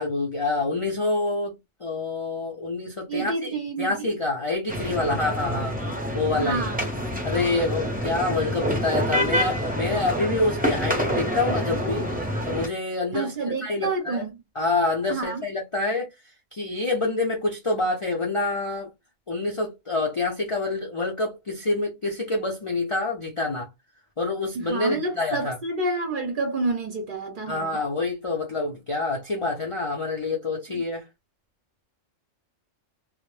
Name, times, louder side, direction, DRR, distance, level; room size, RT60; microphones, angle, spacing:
voice 1, 0.0-5.8 6.1-6.7 7.2-12.1 12.5-14.2 14.5-16.1 16.5-18.9 19.3-23.7 24.2-25.6 27.5-31.0, left 3 dB, 50° left, 0.4 m, -27 dB
voice 2, 3.1-4.1 6.4-6.9 13.1-14.3 15.1-15.4 24.5-27.8 30.7-30.8, right 3 dB, 50° right, 0.6 m, -29 dB
sound 1, 4.7-12.7, equal, 10° right, 0.4 m, -27 dB
2.1 x 2.0 x 3.0 m
omnidirectional pair, 1.3 m